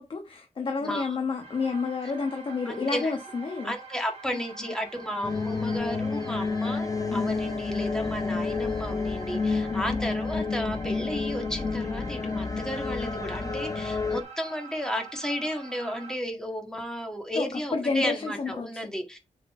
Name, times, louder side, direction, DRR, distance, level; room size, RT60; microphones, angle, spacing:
voice 1, 0.0-3.7 4.3-4.4 7.1-7.2 9.7-9.8 17.3-18.9, left 4 dB, 45° left, 1.2 m, -30 dB
voice 2, 0.8-1.2 2.7-3.1 3.6-19.2, equal, 5° left, 1.8 m, -33 dB
sound 1, 1.4-16.1, right 5 dB, 65° right, 2.0 m, -45 dB
sound 2, 5.2-14.2, left 4 dB, 30° left, 0.6 m, -30 dB
7.2 x 4.2 x 4.3 m
wide cardioid pair, 140°, 12 cm